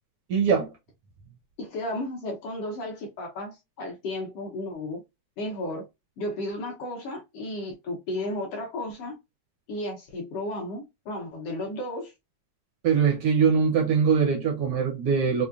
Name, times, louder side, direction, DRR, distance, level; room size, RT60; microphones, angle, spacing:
voice 1, 0.3-0.7 12.8-15.4, right 6 dB, 70° right, 1.4 m, -22 dB
voice 2, 1.6-5.0 5.4-5.8 6.2-9.2 9.7-12.1, left 1 dB, 70° left, 1.5 m, -33 dB
5.3 x 2.2 x 2.4 m
omnidirectional pair, 3.6 m